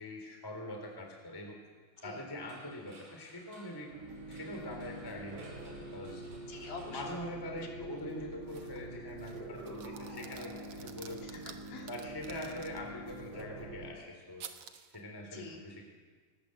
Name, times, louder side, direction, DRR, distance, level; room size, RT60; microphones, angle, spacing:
voice 1, 0.0-1.6 2.0-3.9 4.3-6.2 6.9-11.2 11.9-14.5 14.9-15.8, left 1 dB, 5° left, 2 dB, 2.8 m, -43 dB
sound 1, 2.0-8.0, right 2 dB, 45° right, 6.1 m, -60 dB
sound 2, 3.9-13.9, right 2 dB, 30° right, 4.3 m, -46 dB
voice 2, 6.5-7.2 7.4-7.6 11.2-11.9 15.3-15.6, left 4 dB, 60° left, 1 dB, 4.9 m, -46 dB
sound 3, 8.5-8.9 9.2-13.4 14.4-15.0, right 8 dB, 85° right, 1.3 m, -52 dB
23.5 x 20.0 x 7.9 m, 1.5 s
omnidirectional pair, 4.8 m